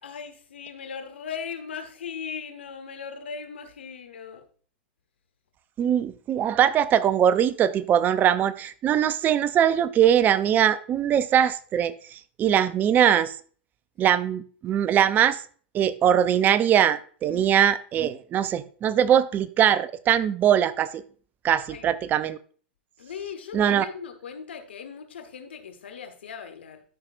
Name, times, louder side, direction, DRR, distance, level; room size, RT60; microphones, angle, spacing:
voice 1, 0.0-4.4 17.3-17.5 21.7-21.9 23.0-26.8, left 6 dB, 80° left, 8 dB, 1.2 m, -38 dB
voice 2, 5.8-13.3 14.0-15.4 15.7-21.0 21.4-22.4 23.5-23.9, right 9 dB, 30° right, 16 dB, 0.5 m, -21 dB
12.5 x 5.7 x 2.5 m, 0.43 s
hypercardioid pair, 105°, 6 cm